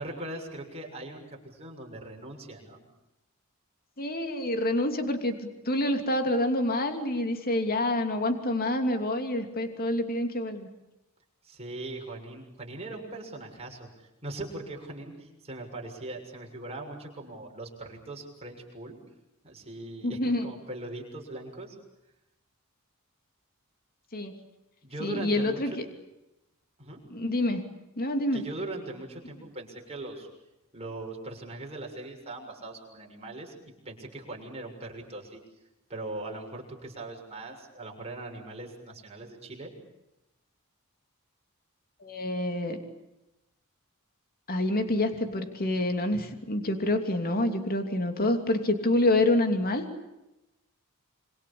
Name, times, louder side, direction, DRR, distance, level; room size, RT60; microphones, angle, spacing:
voice 1, 0.0-2.8 11.4-19.0 19.4-21.7 24.8-25.8 26.8-27.1 28.3-30.3 30.7-33.5 33.8-35.4 35.9-39.7, right 2 dB, 30° right, 1 dB, 6.7 m, -40 dB
voice 2, 4.0-5.3 5.7-10.7 20.0-20.5 24.1-24.3 25.0-25.8 27.1-27.6 28.0-28.4 42.0-42.8 44.5-49.9, left 1 dB, 45° left, 6 dB, 2.9 m, -27 dB
27.0 x 25.0 x 8.7 m, 0.92 s
head